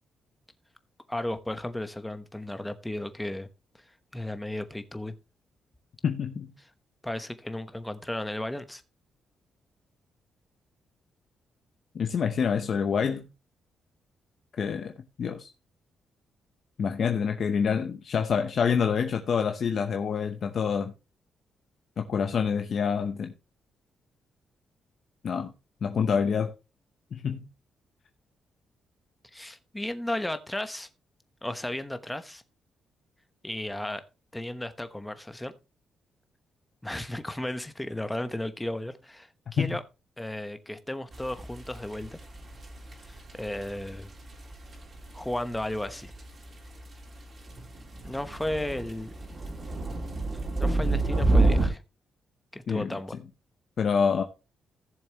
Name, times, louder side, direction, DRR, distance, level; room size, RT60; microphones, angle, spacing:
voice 1, 1.1-3.5 4.1-5.1 7.0-8.8 29.3-30.9 31.4-32.4 33.4-34.0 34.3-35.5 36.8-39.8 40.2-42.2 43.0-44.1 45.1-46.1 48.0-49.1 50.6-51.8 52.5-53.2, left 1 dB, 10° left, 1.0 m, -34 dB
voice 2, 6.0-6.5 11.9-13.3 14.6-14.9 15.2-15.5 16.8-20.9 22.0-23.3 25.2-25.5 25.8-26.5 27.1-27.5 39.6-39.8 52.7-52.9 53.8-54.2, left 6 dB, 55° left, 0.8 m, -27 dB
sound 1, 41.1-51.7, right 2 dB, 40° right, 3.1 m, -29 dB
15.5 x 7.0 x 3.0 m
cardioid pair, 115°, 0 cm